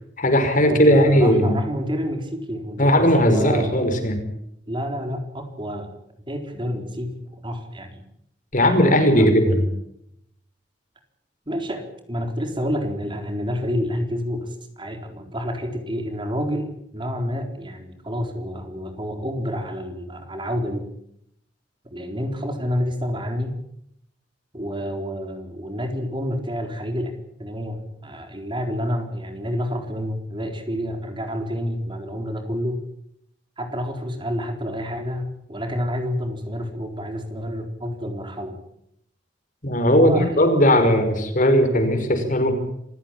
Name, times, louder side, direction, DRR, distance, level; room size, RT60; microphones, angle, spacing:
voice 1, 0.2-1.6 2.8-4.2 8.5-9.7 39.6-42.6, equal, 50° left, 7 dB, 5.4 m, -17 dB
voice 2, 0.7-3.7 4.7-5.9 6.3-8.0 9.1-9.3 11.5-20.9 21.9-23.6 24.5-32.8 33.6-38.6 39.9-40.4, equal, 30° right, 5 dB, 4.0 m, -29 dB
27.0 x 16.5 x 8.8 m, 0.74 s
head